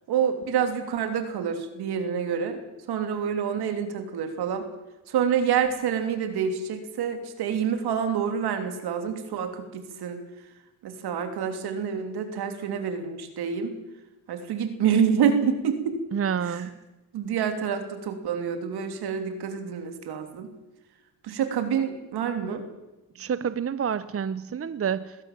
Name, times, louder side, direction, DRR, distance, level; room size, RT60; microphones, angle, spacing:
voice 1, 0.1-2.6 2.9-4.6 5.1-10.2 10.8-13.7 14.3-16.0 16.4-16.7 17.1-20.5 21.2-22.6, right 7 dB, 80° right, 7 dB, 3.2 m, -27 dB
voice 2, 16.1-16.7 23.2-25.2, right 7 dB, 35° right, 15 dB, 0.9 m, -28 dB
21.5 x 16.0 x 7.5 m, 1.0 s
cardioid pair, 80°, 38 cm